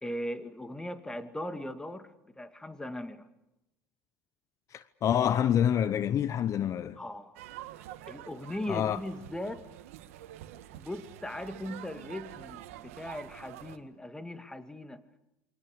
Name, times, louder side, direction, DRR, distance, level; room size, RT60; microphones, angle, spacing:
voice 1, 0.0-3.3 7.0-7.4 8.1-9.7 10.7-15.0, left 1 dB, 10° left, 2.2 m, -39 dB
voice 2, 4.7-7.0 8.7-9.0, left 9 dB, 45° left, 1.0 m, -27 dB
sound 1, 7.3-13.8, right 13 dB, 75° right, 1.7 m, -47 dB
28.5 x 23.5 x 6.7 m
hypercardioid pair, 85°, 8 cm